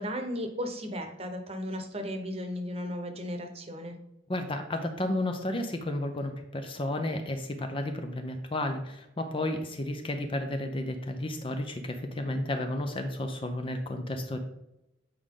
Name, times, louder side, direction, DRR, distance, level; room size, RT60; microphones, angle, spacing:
voice 1, 0.0-3.9, equal, 30° right, 5 dB, 1.0 m, -35 dB
voice 2, 4.3-14.4, left 1 dB, 30° left, 6 dB, 0.6 m, -32 dB
8.4 x 4.9 x 3.8 m, 0.88 s
head